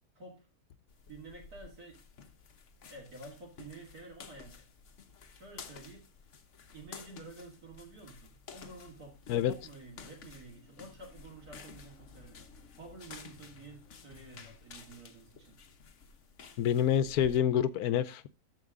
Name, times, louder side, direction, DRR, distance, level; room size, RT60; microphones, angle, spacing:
voice 1, 0.1-0.5 1.1-2.0 2.9-4.7 5.3-6.1 6.7-9.2 9.5-15.6, right 2 dB, 80° right, 2.8 m, -50 dB
sound 1, 0.9-17.4, left 6 dB, 55° left, 1.3 m, -52 dB
voice 2, 16.6-18.3, left 10 dB, 85° left, 1.2 m, -27 dB
13.5 x 4.7 x 3.7 m
omnidirectional pair, 1.6 m